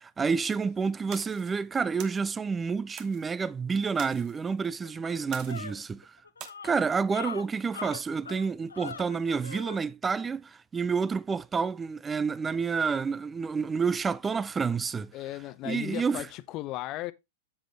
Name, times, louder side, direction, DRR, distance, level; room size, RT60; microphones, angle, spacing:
voice 1, 0.2-6.2 6.6-15.1 15.6-16.3, right 5 dB, 15° right, 0.4 m, -29 dB
sound 1, 1.1-1.5 2.0-2.2 3.0-3.2 4.0-4.4 5.3-5.8 6.4-6.5, right 9 dB, 40° right, 1.3 m, -44 dB
sound 2, 4.3-4.4 4.8-9.8, left 5 dB, 80° left, 0.6 m, -42 dB
voice 2, 15.1-17.1, left 16 dB, 40° left, 0.7 m, -36 dB
7.8 x 7.8 x 3.3 m
figure-of-eight pair, 100°, 0 cm